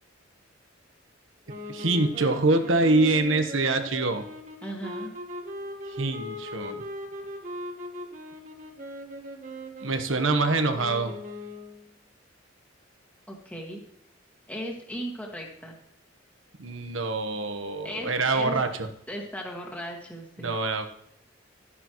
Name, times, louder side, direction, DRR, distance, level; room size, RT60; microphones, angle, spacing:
sound 1, 1.5-11.9, equal, 40° right, 1.4 m, -39 dB
voice 1, 1.7-4.2 5.9-6.8 9.8-11.1 16.6-18.9 20.4-20.9, right 2 dB, 75° right, 7 dB, 1.2 m, -25 dB
voice 2, 4.6-5.1 13.3-13.8 14.5-15.7 17.8-18.6 19.1-20.6, equal, 10° left, -1 dB, 2.0 m, -37 dB
12.5 x 9.8 x 3.1 m, 0.73 s
head